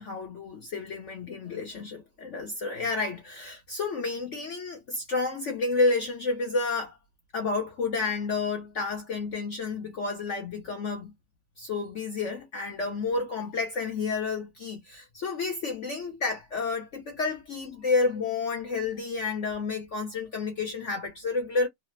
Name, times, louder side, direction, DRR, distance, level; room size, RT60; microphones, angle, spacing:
voice 1, 0.0-7.0 7.3-11.1 11.6-21.7, left 3 dB, 55° left, 0.8 m, -30 dB
3.2 x 2.0 x 3.2 m
omnidirectional pair, 2.0 m